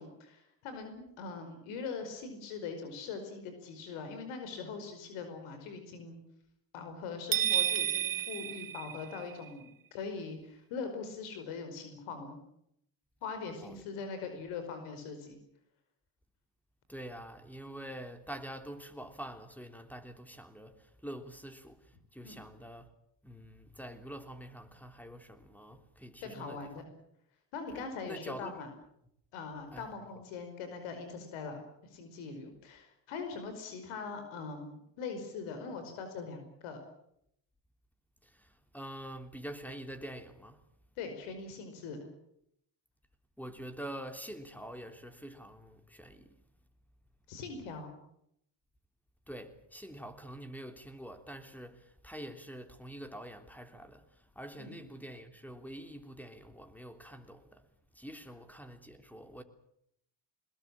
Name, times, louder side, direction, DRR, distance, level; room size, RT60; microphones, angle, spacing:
voice 1, 0.0-6.2 6.7-12.4 13.2-15.4 22.2-22.4 26.2-26.9 27.5-28.7 29.3-36.8 41.0-42.1 47.3-47.9 54.6-54.8, left 5 dB, 80° left, 5.1 m, -42 dB
sound 1, 7.3-9.5, right 11 dB, 45° right, 1.2 m, -31 dB
voice 2, 16.9-22.9 23.2-26.7 27.7-28.6 29.7-29.9 38.2-40.6 43.4-46.4 49.3-57.7 57.9-59.4, right 1 dB, 5° left, 3.4 m, -46 dB
21.5 x 21.0 x 8.9 m
supercardioid pair, 70°, 49 cm